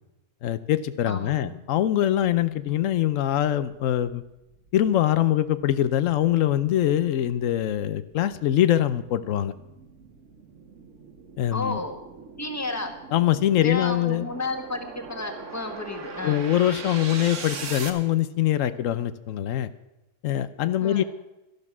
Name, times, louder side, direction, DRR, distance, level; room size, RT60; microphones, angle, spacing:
voice 1, 0.4-4.2 4.7-9.5 11.4-11.8 13.1-14.2 16.2-19.7 20.2-21.0, left 12 dB, 90° left, 14 dB, 1.0 m, -23 dB
voice 2, 1.1-1.6 11.5-12.0 12.4-12.9 13.6-16.4 20.8-21.0, left 2 dB, 15° left, 5 dB, 1.4 m, -32 dB
sound 1, 4.4-17.9, right 5 dB, 75° right, 1.6 m, -41 dB
12.5 x 12.0 x 6.0 m, 0.93 s
omnidirectional pair, 1.3 m